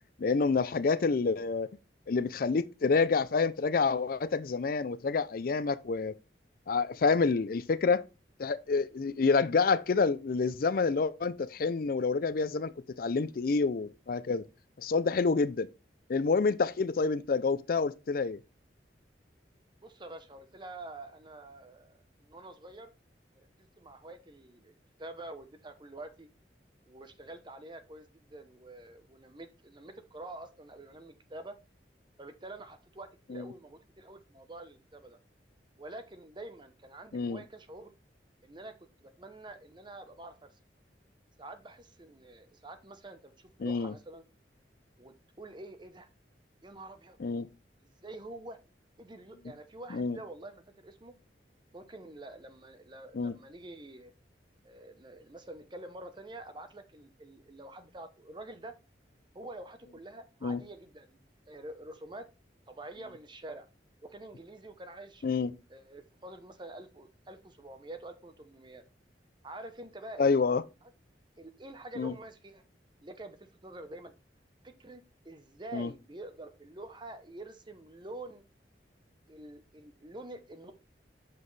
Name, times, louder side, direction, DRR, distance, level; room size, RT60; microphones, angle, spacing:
voice 1, 0.2-1.7 2.1-6.2 6.7-8.0 8.4-14.4 14.8-15.7 16.1-18.4 33.3-33.5 37.1-37.4 43.6-43.9 47.2-47.5 49.9-50.2 53.1-53.3 60.4-60.6 65.2-65.5 70.2-70.6 72.0-72.1 75.7-75.9, left 4 dB, 55° left, 0.4 m, -28 dB
voice 2, 19.8-22.9 23.4-23.5 23.8-24.7 25.0-26.3 26.8-31.6 32.2-35.2 35.8-37.9 38.4-40.5 41.4-44.2 45.0-46.1 46.6-47.2 47.8-48.6 49.0-51.1 51.7-54.1 54.6-58.7 59.3-62.3 62.7-63.7 64.0-65.2 65.7-68.8 69.4-70.3 71.4-72.6 73.0-74.1 74.6-78.4 79.3-80.7, right 2 dB, 25° right, 0.8 m, -47 dB
7.4 x 5.9 x 3.2 m
head